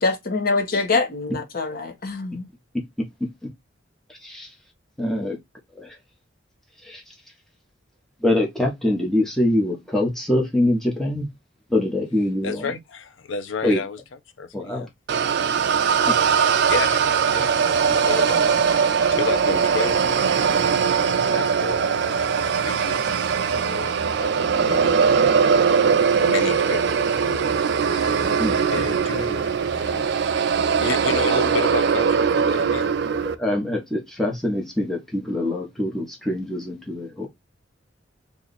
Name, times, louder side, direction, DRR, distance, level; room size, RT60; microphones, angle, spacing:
voice 1, 0.0-2.5, left 3 dB, 50° left, 0.9 m, -24 dB
voice 2, 4.1-4.5 5.0-5.4 5.8-6.0 6.8-7.1 8.2-11.3 11.7-12.8 13.6-13.8 14.5-14.9 16.1-16.2 28.4-28.5 33.4-37.3, left 1 dB, ahead, 1.0 m, -24 dB
voice 3, 12.4-14.0 14.4-14.9 16.0-16.2 16.7-17.0 17.3-18.5 18.8-25.0 26.1-28.4 28.7-32.9, left 4 dB, 75° left, 0.6 m, -32 dB
sound 1, 15.1-33.3, right 6 dB, 60° right, 0.4 m, -21 dB
2.8 x 2.4 x 3.9 m
head